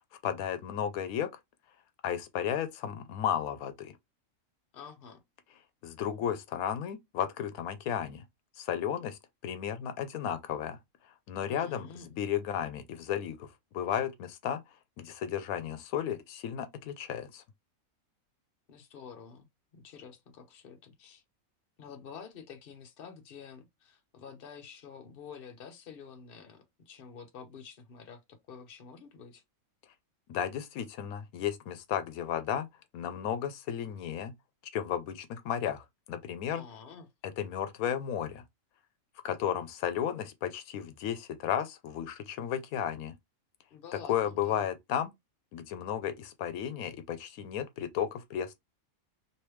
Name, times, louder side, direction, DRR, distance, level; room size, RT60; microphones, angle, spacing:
voice 1, 0.2-1.3 2.0-3.9 5.8-8.2 8.6-10.8 11.3-14.6 15.0-17.4 30.3-32.7 32.9-34.3 34.7-36.6 37.2-38.4 39.2-43.1 44.1-45.1 45.5-48.6, left 9 dB, 85° left, 1.1 m, -34 dB
voice 2, 4.7-5.2 11.5-12.1 18.7-19.5 19.7-21.2 21.8-29.4 36.5-37.1 43.7-44.6, left 6 dB, 50° left, 0.9 m, -49 dB
3.2 x 3.0 x 3.0 m
omnidirectional pair, 1.5 m